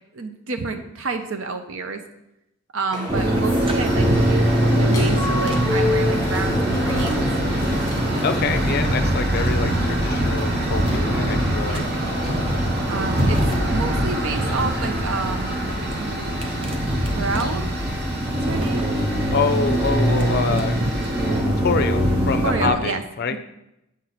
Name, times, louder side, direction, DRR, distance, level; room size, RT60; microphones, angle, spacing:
voice 1, 0.1-2.0 2.7-7.3 11.6-11.9 12.9-15.6 15.9-16.5 17.1-17.6 18.3-18.9 22.4-23.0 23.3-23.4, right 4 dB, 65° right, 7 dB, 0.7 m, -29 dB
sound 1, 2.9-8.7, left 3 dB, 15° left, 1.3 m, -29 dB
sound 2, 3.1-22.7, right 1 dB, 25° right, 0.7 m, -22 dB
Tools, 3.2-22.5, right 1 dB, 45° right, 1.3 m, -33 dB
voice 2, 8.2-11.8 19.3-20.9 21.6-23.4, left 5 dB, 45° left, 9 dB, 0.5 m, -26 dB
7.3 x 4.5 x 4.1 m, 0.86 s
head